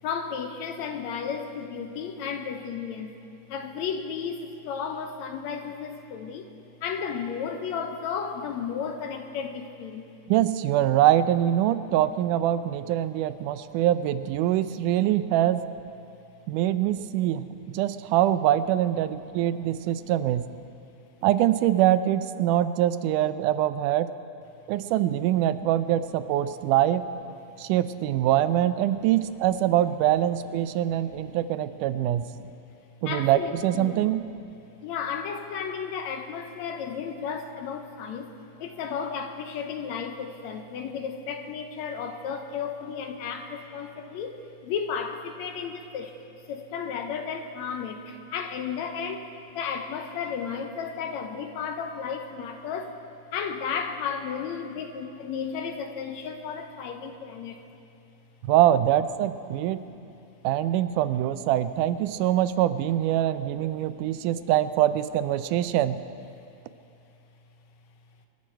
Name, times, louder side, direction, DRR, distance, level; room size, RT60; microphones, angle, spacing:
voice 1, 0.0-3.2 3.5-6.5 6.8-10.0 17.1-17.2 19.8-19.9 30.9-31.4 32.1-32.5 33.1-34.0 34.8-49.3 49.5-53.0 53.3-57.6 59.9-60.0 63.2-64.4, left 6 dB, 75° left, 6 dB, 1.9 m, -34 dB
voice 2, 10.3-15.6 16.5-17.5 17.7-20.4 21.2-24.1 24.7-27.0 27.6-32.2 33.0-34.2 58.4-59.8 60.4-66.0, right 12 dB, 90° right, 13 dB, 2.1 m, -24 dB
25.5 x 11.5 x 4.5 m, 2.6 s
omnidirectional pair, 3.6 m